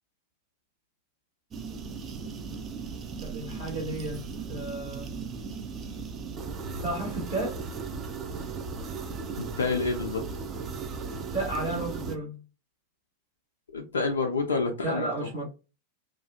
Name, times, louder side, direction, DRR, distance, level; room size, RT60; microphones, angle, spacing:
sound 1, 1.5-12.2, right 4 dB, 25° right, 0.4 m, -37 dB
voice 1, 3.2-5.1 6.8-7.6 11.0-12.4 14.8-15.4, right 2 dB, 55° right, 1.2 m, -33 dB
voice 2, 9.4-10.2 13.7-15.1, left 4 dB, 70° left, 0.3 m, -28 dB
2.5 x 2.3 x 2.6 m
figure-of-eight pair, 90°, 0 cm